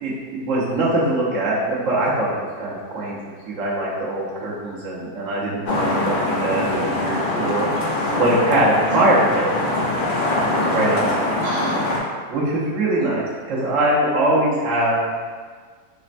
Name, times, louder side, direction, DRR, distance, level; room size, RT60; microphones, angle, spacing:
voice 1, 0.0-3.2 3.5-7.7 8.2-9.5 10.7-11.4 12.3-15.0, right 1 dB, 60° right, -6 dB, 1.0 m, -22 dB
sound 1, 5.7-12.0, left 2 dB, 70° left, 1.0 m, -23 dB
voice 2, 11.1-12.0, left 1 dB, 75° right, -11 dB, 1.5 m, -29 dB
4.1 x 2.1 x 2.5 m, 1.6 s
omnidirectional pair, 1.8 m